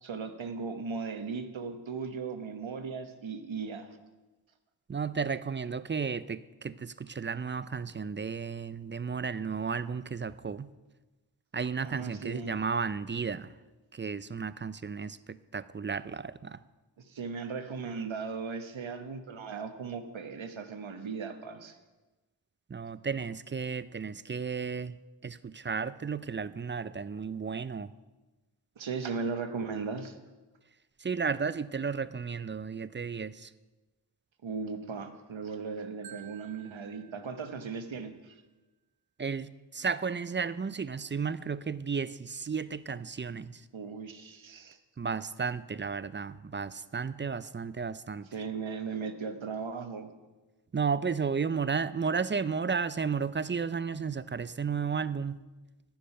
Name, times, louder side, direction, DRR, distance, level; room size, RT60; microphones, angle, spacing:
voice 1, 0.0-4.0 11.8-12.6 17.0-21.8 28.8-30.2 34.4-38.4 43.7-44.8 48.3-50.1, right 5 dB, 85° right, 8 dB, 1.1 m, -37 dB
voice 2, 4.9-10.7 11.5-13.5 13.9-16.6 22.7-25.0 25.2-27.9 31.0-33.5 39.2-43.6 45.0-48.3 50.7-55.4, right 5 dB, 30° right, 16 dB, 0.3 m, -33 dB
Marimba xylophone, 36.0-38.1, right 12 dB, 55° right, 0.7 m, -54 dB
10.5 x 10.5 x 5.5 m, 1.2 s
wide cardioid pair, 75°, 45 cm